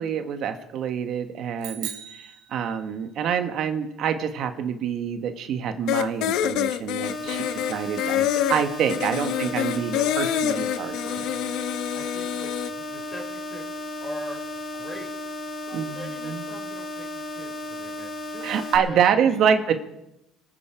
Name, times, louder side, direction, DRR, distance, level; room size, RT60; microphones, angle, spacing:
voice 1, 0.0-7.4 7.7-11.3 15.7-16.4 18.4-19.7, right 8 dB, 60° right, 7 dB, 1.4 m, -26 dB
sound 1, 1.6-3.2, right 11 dB, 90° right, 3.2 m, -38 dB
sound 2, 5.9-12.7, left 11 dB, 75° left, 0.8 m, -26 dB
sound 3, 7.0-18.8, left 1 dB, 50° left, 3.0 m, -35 dB
voice 2, 7.2-7.5 9.0-9.2 9.6-9.7 9.9-11.5 11.9-13.6 14.0-14.4 14.7-15.1 15.7-19.0 19.3-19.4, left 1 dB, 20° left, 1 dB, 4.7 m, -42 dB
24.5 x 9.1 x 5.0 m, 0.86 s
cardioid pair, 115°, 0 cm